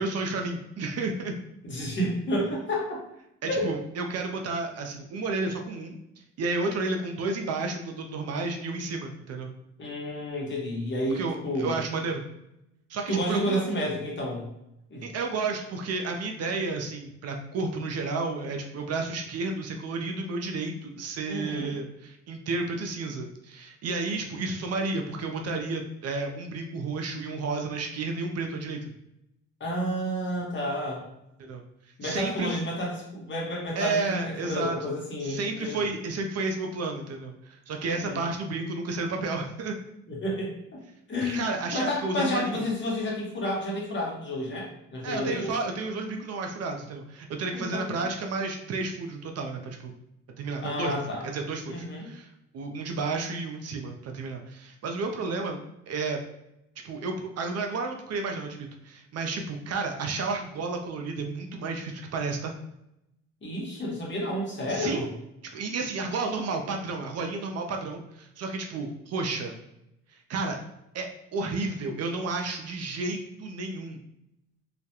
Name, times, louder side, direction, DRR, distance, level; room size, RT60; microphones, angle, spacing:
voice 1, 0.0-1.3 3.4-6.0 6.4-9.5 11.1-12.2 12.9-13.6 15.0-28.9 31.4-31.6 32.0-32.6 33.7-34.8 35.2-39.8 41.2-42.6 45.0-49.9 50.4-52.3 52.5-55.6 55.9-56.2 56.8-62.6 64.7-65.1 65.5-69.5 70.3-70.6 70.9-74.0, right 3 dB, 55° right, 3 dB, 0.4 m, -32 dB
voice 2, 1.6-3.0 3.4-3.7 9.8-11.8 13.1-14.5 14.9-15.0 21.3-21.8 29.6-31.0 32.0-35.8 37.8-38.2 40.1-40.8 41.1-41.5 41.7-45.5 47.5-48.0 50.6-51.2 51.7-52.1 63.4-65.1, equal, 40° left, -3 dB, 0.9 m, -30 dB
2.3 x 2.1 x 2.8 m, 0.85 s
cardioid pair, 90°, 30 cm